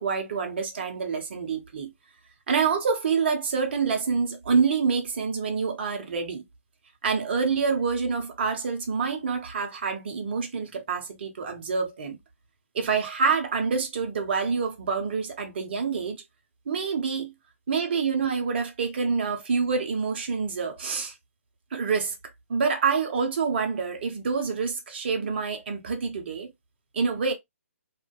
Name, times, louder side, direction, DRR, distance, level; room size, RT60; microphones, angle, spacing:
voice 1, 0.0-1.9 2.5-6.4 7.0-12.2 12.7-16.2 16.7-17.3 17.7-21.1 21.7-22.1 22.5-26.5 26.9-27.3, right 5 dB, 45° right, 0.7 m, -27 dB
2.5 x 2.2 x 2.3 m
figure-of-eight pair, 135°, 8 cm